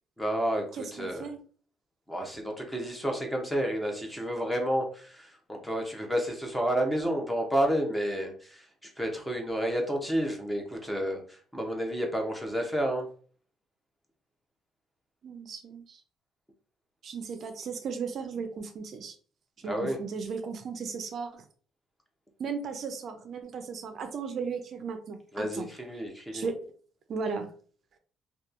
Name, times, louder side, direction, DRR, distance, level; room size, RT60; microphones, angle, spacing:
voice 1, 0.2-1.3 2.1-13.1 19.6-20.0 25.3-26.5, equal, 5° left, 2 dB, 0.5 m, -30 dB
voice 2, 0.7-1.4 15.2-16.0 17.0-19.2 19.6-21.4 22.4-25.7 26.3-26.7 27.1-27.5, right 5 dB, 45° right, 6 dB, 0.4 m, -36 dB
2.8 x 2.2 x 2.4 m, 0.43 s
cardioid pair, 145°, 0 cm